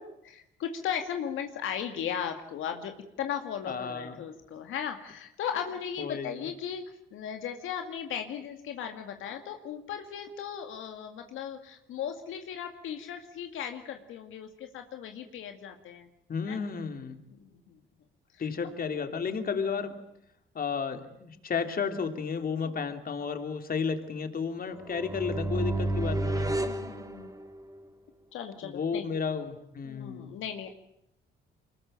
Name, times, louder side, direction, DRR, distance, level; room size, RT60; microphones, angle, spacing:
voice 1, 0.0-2.9 3.2-6.8 7.1-16.1 16.5-16.6 17.3-17.8 18.3-18.5 22.6-22.7 24.6-24.7 25.9-26.2 26.5-27.3 28.3-29.1 29.8-30.7, left 8 dB, 85° left, 6 dB, 2.2 m, -37 dB
voice 2, 3.6-4.2 6.0-6.4 16.3-17.2 18.4-19.9 20.5-26.5 28.6-30.3, left 5 dB, 45° left, 7 dB, 3.2 m, -32 dB
sound 1, 24.7-27.8, right 2 dB, 20° right, 3.4 m, -31 dB
24.5 x 21.0 x 9.0 m, 0.77 s
cardioid pair, 90°, 20 cm